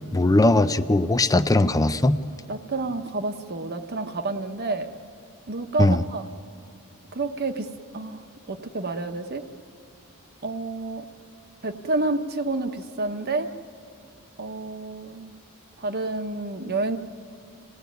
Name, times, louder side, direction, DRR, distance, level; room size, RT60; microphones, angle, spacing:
voice 1, 0.1-2.2 5.8-6.0, left 2 dB, 15° left, 10 dB, 0.5 m, -19 dB
voice 2, 2.5-4.9 5.5-6.3 7.1-9.4 10.4-11.0 11.6-13.5 14.4-15.4 15.8-17.0, right 3 dB, 45° right, 6 dB, 1.1 m, -29 dB
27.5 x 18.0 x 9.3 m, 2.5 s
head